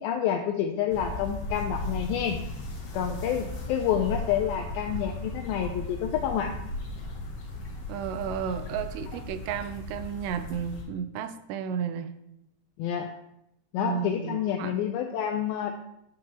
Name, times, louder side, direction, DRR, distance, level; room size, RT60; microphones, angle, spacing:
voice 1, 0.0-2.4 2.9-6.5 12.8-13.1 13.7-15.7, left 9 dB, 90° left, 3 dB, 2.1 m, -28 dB
sound 1, 0.9-10.8, left 2 dB, 55° left, 1.9 m, -36 dB
voice 2, 7.9-12.1 13.8-14.8, right 8 dB, 90° right, 9 dB, 2.8 m, -33 dB
10.5 x 6.0 x 2.9 m, 0.80 s
omnidirectional pair, 4.8 m